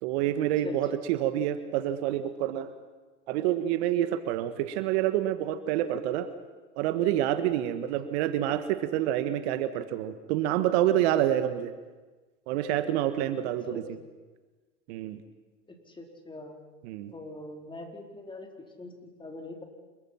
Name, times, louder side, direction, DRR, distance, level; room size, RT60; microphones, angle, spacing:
voice 1, 0.0-2.7 3.3-6.3 6.8-11.7 12.5-13.8 14.9-15.2 16.9-17.1, right 12 dB, 65° right, 11 dB, 1.7 m, -27 dB
voice 2, 0.6-1.1 8.0-8.5 13.7-13.9 15.7-16.6 17.1-19.6, left 2 dB, 15° left, 3 dB, 4.7 m, -43 dB
27.0 x 22.5 x 5.9 m, 1.3 s
hypercardioid pair, 90°, 35 cm